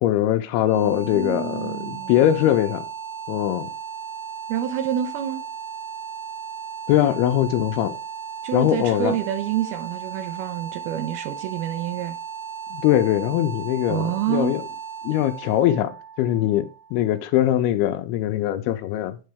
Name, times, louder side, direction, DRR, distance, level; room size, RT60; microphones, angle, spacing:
voice 1, 0.0-2.9 3.3-3.7 6.9-8.0 8.5-9.2 12.7-14.6 15.0-19.2, left 12 dB, 80° left, 2.5 m, -22 dB
sound 1, 0.5-17.4, right 7 dB, 45° right, 1.5 m, -36 dB
voice 2, 0.7-2.2 4.5-5.4 8.4-12.2 13.9-14.5, right 10 dB, 75° right, 2.6 m, -28 dB
9.7 x 3.8 x 3.4 m
omnidirectional pair, 4.7 m